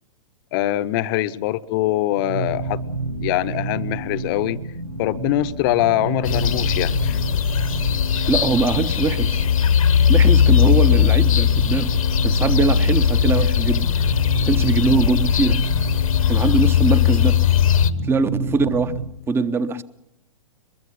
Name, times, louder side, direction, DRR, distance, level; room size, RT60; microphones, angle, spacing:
voice 1, 0.5-2.8 3.2-4.6 5.0-7.2 11.1-11.2 17.1-17.3, left 14 dB, 40° left, 0.9 m, -23 dB
sound 1, 2.2-19.2, right 3 dB, 85° right, 2.0 m, -30 dB
sound 2, 6.2-17.9, left 9 dB, 70° left, 1.1 m, -18 dB
voice 2, 8.3-9.5 10.1-11.9 12.2-13.9 14.5-15.6 16.3-17.4 18.1-19.8, right 4 dB, 15° right, 0.9 m, -22 dB
23.0 x 22.0 x 5.8 m
figure-of-eight pair, 115°, 18 cm